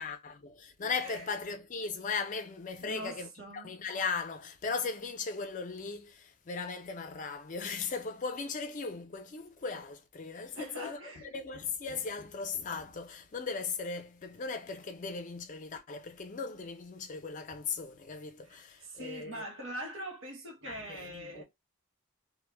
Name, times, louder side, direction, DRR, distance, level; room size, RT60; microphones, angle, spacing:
voice 1, 0.0-19.4 20.6-21.4, left 4 dB, 35° left, 0.4 m, -38 dB
voice 2, 1.0-1.3 2.8-3.8 10.5-11.3 18.4-21.4, right 1 dB, 60° right, 0.9 m, -43 dB
2.1 x 2.1 x 3.2 m
head